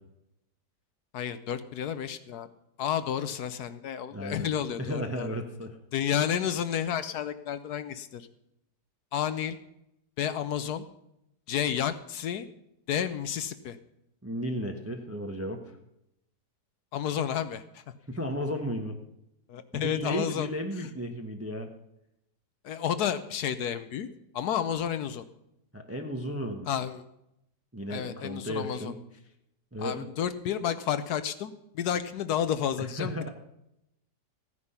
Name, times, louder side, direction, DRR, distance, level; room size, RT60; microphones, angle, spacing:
voice 1, 1.1-2.5 2.8-5.3 5.9-8.3 9.1-9.6 10.2-10.8 11.5-12.5 12.9-13.8 16.9-17.8 19.5-20.5 22.6-24.1 24.3-25.2 26.7-27.0 27.9-28.9 29.8-33.3, left 9 dB, 70° left, 12 dB, 1.2 m, -31 dB
voice 2, 4.1-4.5 4.8-5.8 14.2-15.8 18.1-19.0 19.8-21.7 25.7-26.7 27.7-29.0 29.7-30.1 32.8-33.3, equal, 10° right, 4 dB, 0.8 m, -34 dB
15.0 x 9.6 x 5.6 m, 0.83 s
omnidirectional pair, 1.8 m